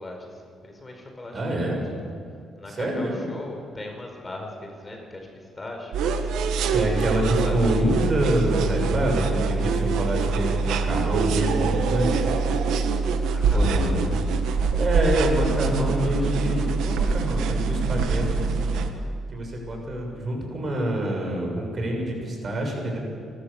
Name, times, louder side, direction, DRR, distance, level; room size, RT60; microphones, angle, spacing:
voice 1, 0.0-1.7 2.6-6.5 7.4-8.1 13.3-13.8 15.4-16.7, left 2 dB, 25° left, 2 dB, 4.6 m, -40 dB
voice 2, 1.3-1.8 2.8-3.3 6.7-12.3 13.5-13.9 14.7-18.8 19.3-23.0, right 1 dB, 40° right, 1 dB, 6.6 m, -26 dB
sound 1, 5.9-18.9, right 4 dB, 85° right, 1.6 m, -24 dB
30.0 x 13.5 x 7.2 m, 2.4 s
cardioid pair, 90°, 0 cm